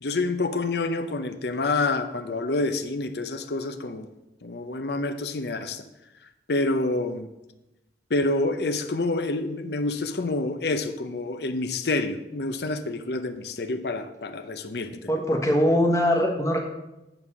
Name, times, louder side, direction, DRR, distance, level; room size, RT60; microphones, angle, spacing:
voice 1, 0.0-4.1 4.4-5.8 6.5-7.3 8.1-15.1, left 2 dB, 60° left, 10 dB, 0.7 m, -28 dB
voice 2, 15.1-16.6, equal, 15° left, 1 dB, 1.3 m, -22 dB
8.9 x 5.5 x 5.9 m, 0.96 s
head